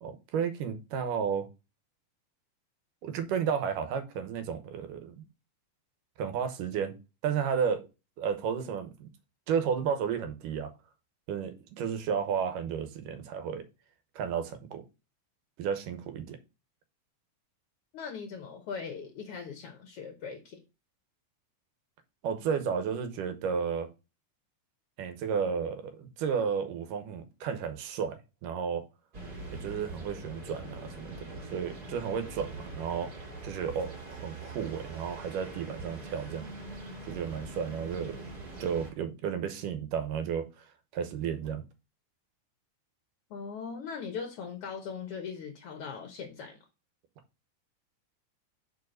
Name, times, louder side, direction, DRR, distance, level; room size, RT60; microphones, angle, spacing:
voice 1, 0.0-1.5 3.0-5.2 6.2-6.9 7.2-7.8 8.2-9.1 9.5-10.7 11.3-13.6 14.2-14.8 15.6-16.4 22.2-23.9 25.0-28.8 29.5-33.1 33.4-36.5 37.1-38.2 38.6-40.7 40.9-41.6, right 7 dB, 80° right, 2.5 m, -32 dB
voice 2, 17.9-20.6 43.3-46.6, left 6 dB, 70° left, 1.4 m, -40 dB
sound 1, 29.1-38.9, right 2 dB, 35° right, 2.2 m, -43 dB
5.6 x 4.8 x 6.4 m
omnidirectional pair, 3.8 m